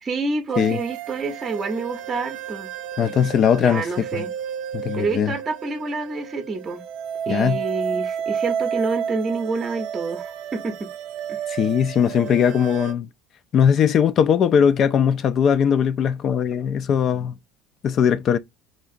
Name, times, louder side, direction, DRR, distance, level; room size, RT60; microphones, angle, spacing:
voice 1, 0.0-2.7 3.6-4.3 5.0-6.8 7.3-10.9 11.3-11.4, right 3 dB, 30° right, 0.6 m, -28 dB
sound 1, 0.5-12.9, right 8 dB, 75° right, 0.5 m, -31 dB
voice 2, 3.0-4.2 4.7-5.3 7.3-7.6 11.5-13.1 13.5-17.4 17.8-18.4, left 8 dB, 50° left, 0.3 m, -20 dB
3.9 x 2.3 x 2.6 m
supercardioid pair, 90°, 0 cm